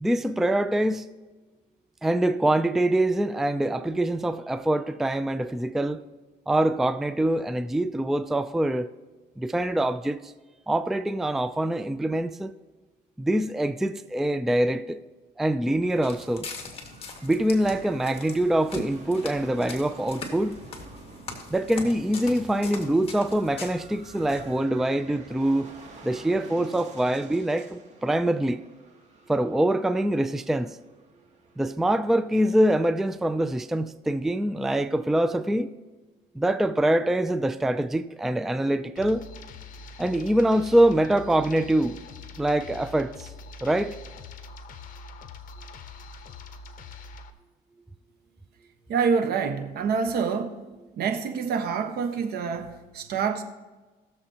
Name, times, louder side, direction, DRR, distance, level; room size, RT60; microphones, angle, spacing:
voice 1, 0.0-1.1 2.0-6.0 6.5-8.9 9.4-10.2 10.7-12.5 13.2-15.0 15.4-16.5 17.2-20.6 21.5-25.7 26.0-28.6 29.3-30.8 31.6-35.7 36.4-39.3 40.0-42.0 42.4-43.3 43.6-43.9, right 1 dB, ahead, 0.3 m, -24 dB
Walk footsteps, 15.9-24.6, left 3 dB, 35° left, 2.0 m, -41 dB
sound 1, 15.9-33.5, right 3 dB, 45° right, 2.5 m, -51 dB
sound 2, 39.0-47.3, left 4 dB, 55° left, 1.0 m, -43 dB
voice 2, 48.9-50.6 51.0-53.4, right 6 dB, 65° right, 1.2 m, -27 dB
20.5 x 7.0 x 2.9 m
cardioid pair, 110°, 17 cm